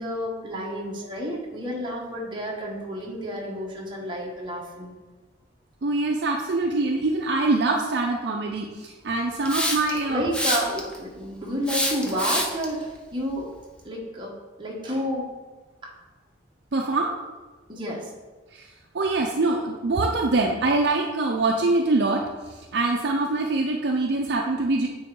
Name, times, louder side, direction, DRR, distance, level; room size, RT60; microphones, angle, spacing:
voice 1, 0.0-4.9 10.1-13.5 13.8-15.3 15.8-15.9 17.7-18.1, equal, 25° right, -3 dB, 1.1 m, -30 dB
voice 2, 5.8-10.3 16.7-17.1 18.5-18.7 18.9-24.9, right 2 dB, 55° right, 1 dB, 0.5 m, -24 dB
Hiss, 9.5-10.0 10.3-11.0 11.7-12.6, equal, 5° left, 0.5 m, -25 dB
8.8 x 3.5 x 3.8 m, 1.3 s
head